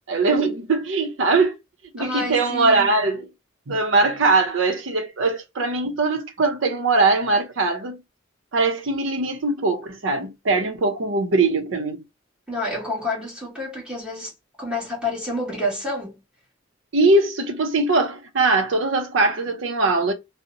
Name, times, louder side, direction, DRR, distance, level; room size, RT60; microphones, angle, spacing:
voice 1, 0.1-1.6 1.9-3.3 3.7-8.0 8.5-12.0 16.9-20.1, right 3 dB, 70° right, 0.6 m, -21 dB
voice 2, 2.0-3.0 12.5-14.3 14.6-16.2, left 1 dB, 5° right, 1.3 m, -29 dB
2.8 x 2.1 x 2.5 m
head